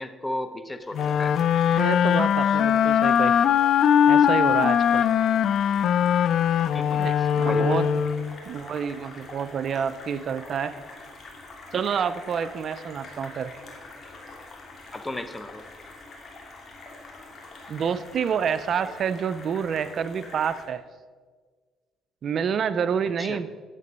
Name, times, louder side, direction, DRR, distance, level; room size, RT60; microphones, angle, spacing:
voice 1, 0.0-1.3 6.7-6.9 7.4-7.7 14.9-15.6 23.2-23.4, left 1 dB, 15° left, 10 dB, 0.8 m, -33 dB
sound 1, 0.9-8.4, left 9 dB, 65° left, 0.3 m, -21 dB
sound 2, 0.9-20.6, left 2 dB, 45° left, 2.7 m, -45 dB
voice 2, 1.8-3.3 4.1-5.0 6.9-7.9 8.5-10.7 11.7-13.5 17.7-20.8 22.2-23.5, right 7 dB, 55° right, 14 dB, 0.4 m, -28 dB
9.8 x 7.5 x 5.3 m, 1.5 s
cardioid pair, 85°, 0 cm